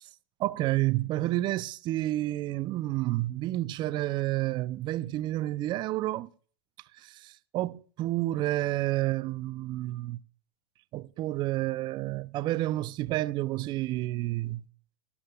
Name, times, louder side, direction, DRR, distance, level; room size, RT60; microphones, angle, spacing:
voice 1, 0.4-6.3 7.0-10.2 10.9-14.7, right 16 dB, 30° right, 0.5 m, -30 dB
18.5 x 12.5 x 2.3 m
hypercardioid pair, 115°, 14 cm